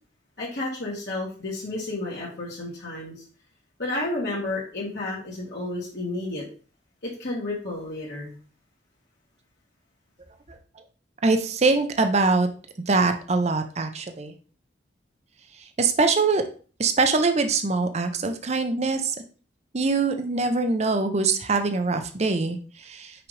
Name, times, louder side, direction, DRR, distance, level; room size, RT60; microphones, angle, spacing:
voice 1, 0.4-3.1 3.8-6.4 7.0-8.3, left 2 dB, 55° left, -7 dB, 1.6 m, -31 dB
voice 2, 11.2-12.5 12.9-14.3 15.8-16.4 16.8-19.1 19.7-23.3, right 3 dB, 35° right, 7 dB, 0.6 m, -23 dB
5.9 x 5.0 x 3.2 m, 0.39 s
head